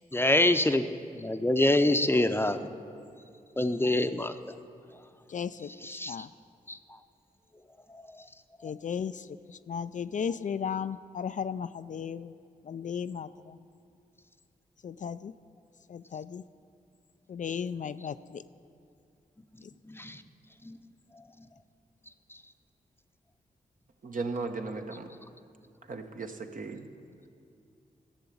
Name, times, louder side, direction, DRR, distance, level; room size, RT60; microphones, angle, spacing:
voice 1, 0.1-0.8 1.2-2.7 3.6-4.3 5.8-6.2 6.7-6.8 20.0-20.2 20.7-20.8, left 1 dB, 15° left, 9 dB, 0.7 m, -25 dB
voice 2, 5.3-6.3 8.6-9.2 9.5-12.3 12.7-13.5 14.8-15.3 15.9-16.4 17.3-18.4, left 7 dB, 50° left, 13 dB, 0.4 m, -35 dB
voice 3, 24.0-25.1 25.9-26.9, right 3 dB, 55° right, 5 dB, 1.1 m, -36 dB
13.5 x 6.8 x 8.5 m, 2.5 s
supercardioid pair, 40°, 16 cm